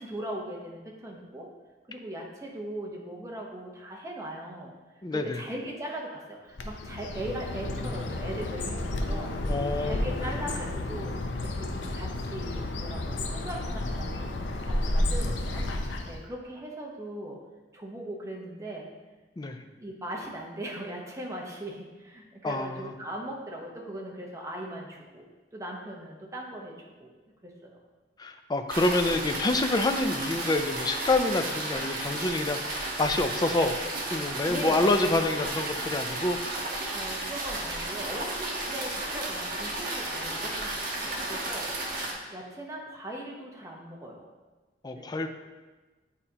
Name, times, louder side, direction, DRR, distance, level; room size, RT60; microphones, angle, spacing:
voice 1, 0.0-1.5 1.9-4.7 5.1-9.4 9.8-14.3 14.7-15.7 16.0-17.4 17.7-18.9 19.8-25.2 25.5-27.1 27.4-27.8 34.5-35.1 36.9-41.8 42.3-44.3 44.9-45.1, right 1 dB, 15° right, -2 dB, 0.8 m, -39 dB
voice 2, 5.0-5.4 9.4-10.4 19.4-19.6 22.4-22.9 28.2-33.8 34.1-36.4 44.8-45.3, left 2 dB, 20° left, 6 dB, 0.4 m, -27 dB
Bird, 6.5-16.3, left 1 dB, 80° left, 0.6 m, -31 dB
sound 1, 28.7-42.1, right 2 dB, 50° right, 1.2 m, -33 dB
8.7 x 4.2 x 2.8 m, 1.2 s
head